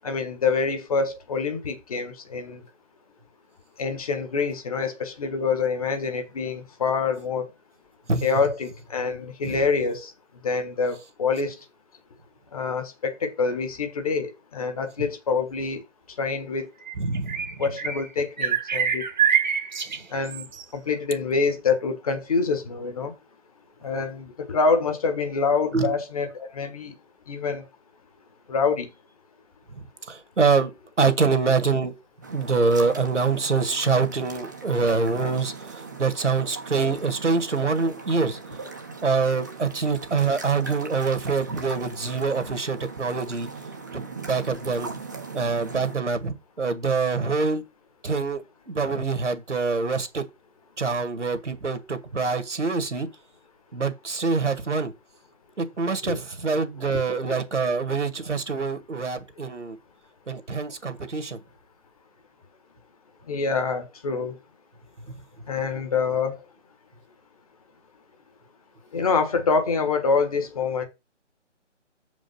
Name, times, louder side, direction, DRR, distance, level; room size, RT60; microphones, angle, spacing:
voice 1, 0.0-2.6 3.8-7.5 8.2-10.1 10.4-11.6 12.5-15.8 16.2-16.7 17.6-19.1 20.1-23.1 23.8-26.9 27.3-27.7 28.5-28.9 56.1-56.2 63.3-64.4 65.5-66.4 68.9-70.9, left 4 dB, 30° left, 1.3 m, -26 dB
sound 1, 16.8-18.1 18.4-20.6, right 8 dB, 40° right, 1.0 m, -25 dB
voice 2, 17.0-17.5 19.9-20.1 25.7-26.0 29.7-30.7 31.0-31.9 32.3-38.4 39.0-43.5 43.9-44.9 45.3-47.6 48.0-50.2 50.8-53.1 53.7-54.9 55.6-59.8 60.3-61.4, right 4 dB, 70° right, 1.7 m, -25 dB
sound 2, 32.2-46.0, right 4 dB, 15° right, 0.7 m, -39 dB
7.3 x 5.2 x 5.4 m
figure-of-eight pair, 150°, 37 cm